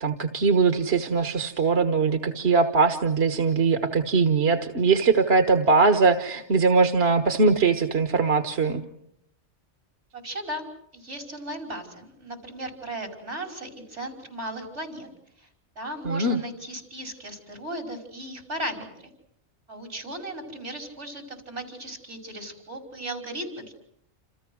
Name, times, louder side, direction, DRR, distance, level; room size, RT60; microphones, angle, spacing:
voice 1, 0.0-8.8 16.0-16.4, right 4 dB, 65° right, 7 dB, 1.6 m, -21 dB
voice 2, 10.1-10.7 10.9-15.1 15.4-15.5 15.8-19.1 19.7-23.7, right 1 dB, 85° right, 4 dB, 6.0 m, -36 dB
29.0 x 28.5 x 6.4 m, 0.71 s
omnidirectional pair, 1.2 m